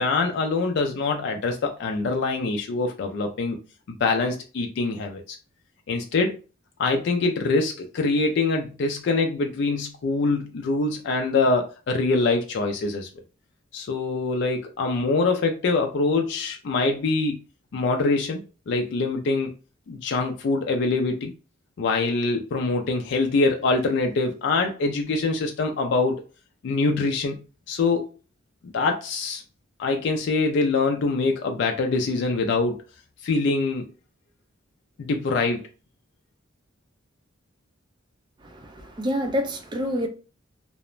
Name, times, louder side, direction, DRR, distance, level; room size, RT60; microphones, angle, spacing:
voice 1, 0.0-3.6 3.9-5.2 5.9-6.4 6.8-13.1 13.7-17.4 17.7-19.5 19.9-21.3 21.8-26.2 26.6-27.4 27.7-28.1 28.7-29.4 29.8-32.8 33.2-33.9 35.0-35.7, left 3 dB, 60° left, 0.3 m, -24 dB
voice 2, 38.4-40.1, equal, 20° right, 0.4 m, -27 dB
2.4 x 2.0 x 3.0 m
head